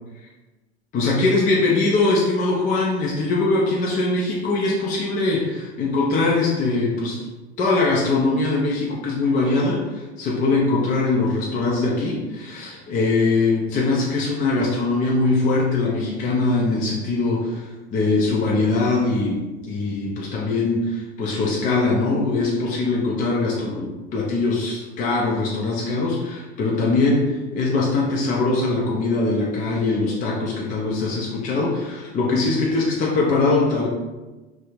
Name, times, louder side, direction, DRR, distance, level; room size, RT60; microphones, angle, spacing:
voice 1, 0.9-7.3 7.6-33.9, left 3 dB, 25° left, -3 dB, 0.4 m, -22 dB
2.4 x 2.0 x 3.0 m, 1.2 s
hypercardioid pair, 90°, 33 cm